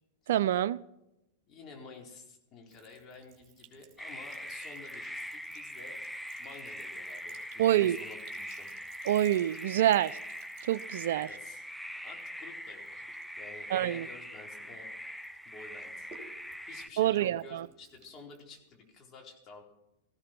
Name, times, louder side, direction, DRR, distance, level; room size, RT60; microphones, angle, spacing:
voice 1, 0.3-0.8 7.6-8.0 9.1-10.2 10.6-11.3 13.7-14.1 17.0-17.7, right 12 dB, 65° right, 0.4 m, -26 dB
voice 2, 1.5-6.0 6.4-8.7 11.2-11.7 12.0-13.1 13.4-15.1 15.5-16.2 16.6-19.6, left 4 dB, 35° left, 4.1 m, -51 dB
Sink (filling or washing) / Trickle dribble, 2.7-14.8 15.2-19.0, right 6 dB, 40° right, 3.1 m, -59 dB
sound 1, 4.0-16.9, equal, ahead, 0.6 m, -42 dB
18.0 x 15.0 x 4.5 m
hypercardioid pair, 105°, 0 cm